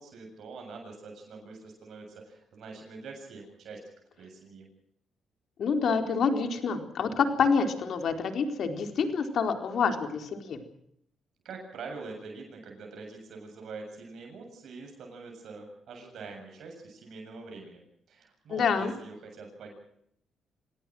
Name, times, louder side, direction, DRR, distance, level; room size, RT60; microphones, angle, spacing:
voice 1, 0.0-3.8 4.2-4.7 11.4-17.8 18.1-19.7, right 4 dB, 70° right, 2 dB, 7.6 m, -44 dB
voice 2, 5.6-10.6 18.5-18.9, left 5 dB, 60° left, 6 dB, 4.1 m, -27 dB
26.0 x 18.5 x 6.3 m, 0.71 s
cardioid pair, 90°, 0 cm